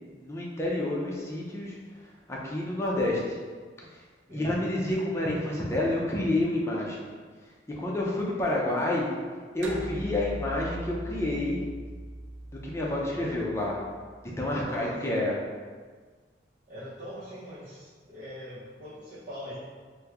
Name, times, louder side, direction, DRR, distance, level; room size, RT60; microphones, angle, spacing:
voice 1, 0.1-1.8 2.3-3.4 4.3-7.0 7.8-9.1 9.5-11.6 12.6-13.8 14.4-15.4, left 1 dB, 15° left, -4 dB, 0.5 m, -29 dB
sound 1, 9.6-14.4, right 1 dB, 90° right, 0.5 m, -40 dB
voice 2, 14.6-15.2 16.7-19.6, equal, 55° right, -13 dB, 0.8 m, -41 dB
3.0 x 2.2 x 3.5 m, 1.5 s
head